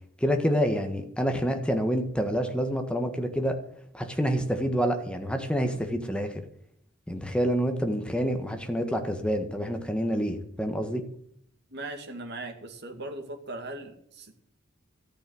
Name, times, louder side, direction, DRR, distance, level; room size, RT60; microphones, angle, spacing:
voice 1, 0.2-3.6 3.9-6.3 7.1-11.0, equal, 5° left, 5 dB, 1.5 m, -27 dB
voice 2, 11.7-14.5, right 2 dB, 60° right, 4 dB, 2.3 m, -39 dB
13.5 x 9.1 x 7.8 m, 0.68 s
head